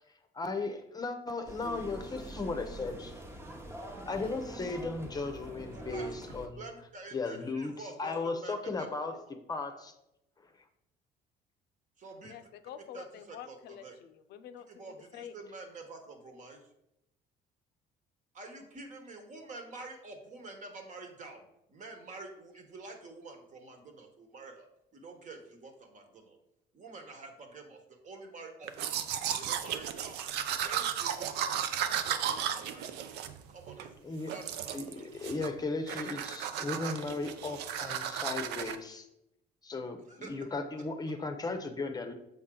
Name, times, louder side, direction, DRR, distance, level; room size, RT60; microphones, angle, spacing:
voice 1, 0.3-3.2 4.1-6.6 7.1-9.1 9.5-9.9 34.0-34.3 34.7-39.1 39.6-42.1, left 3 dB, 25° left, 7 dB, 0.7 m, -36 dB
sound 1, 1.4-6.5, right 1 dB, 15° right, 0.8 m, -45 dB
voice 2, 5.7-6.1 6.5-9.0 12.0-12.4 12.9-14.0 14.7-16.6 18.3-24.6 24.9-26.4 26.7-28.7 29.3-30.2 30.5-33.2 33.5-35.0 40.1-40.4, right 3 dB, 45° right, 4 dB, 1.3 m, -48 dB
voice 3, 12.3-14.8 15.1-15.4, left 9 dB, 75° left, 10 dB, 0.5 m, -47 dB
Domestic sounds home sounds, 28.7-33.9 34.3-34.9 35.2-35.6 35.9-38.8, right 9 dB, 80° right, 0.5 m, -35 dB
7.0 x 4.3 x 3.8 m, 0.84 s
cardioid pair, 110°, 17 cm